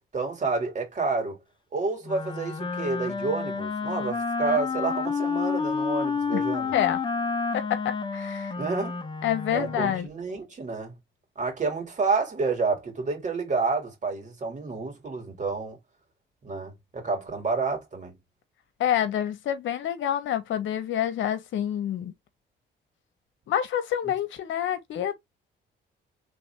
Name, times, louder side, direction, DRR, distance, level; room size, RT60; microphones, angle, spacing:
voice 1, 0.1-1.4 1.7-6.7 8.6-9.0 9.5-10.9 11.4-15.8 16.4-18.2, right 4 dB, 40° right, 2.3 m, -29 dB
Wind instrument woodwind instrument, 2.0-10.1, left 5 dB, 25° left, 0.8 m, -30 dB
voice 2, 6.7-7.0 7.5-8.5 9.2-10.1 18.8-22.1 23.5-25.1, left 10 dB, 75° left, 0.9 m, -27 dB
3.5 x 2.6 x 3.3 m
cardioid pair, 90°, 20 cm